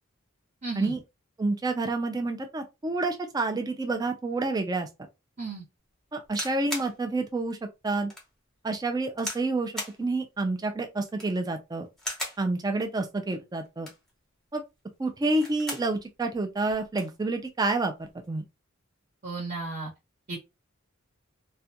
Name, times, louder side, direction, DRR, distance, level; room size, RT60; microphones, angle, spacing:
voice 1, 0.6-0.9 5.4-5.6 19.2-19.9 20.3-20.4, right 3 dB, 45° right, 0.9 m, -34 dB
voice 2, 1.4-4.9 6.1-7.6 7.8-8.1 8.6-11.9 12.4-13.9 14.5-14.6 15.0-18.4, right 2 dB, 20° right, 0.3 m, -29 dB
sound 1, 6.2-6.9 7.5-7.6 8.1-8.3 9.2-9.5 9.8-10.0 11.0-11.4 12.0-12.4 13.7-14.1 15.2-15.9 16.3-16.4 16.6-17.1 18.0-18.3, left 1 dB, ahead, 0.7 m, -37 dB
2.4 x 2.1 x 2.7 m
head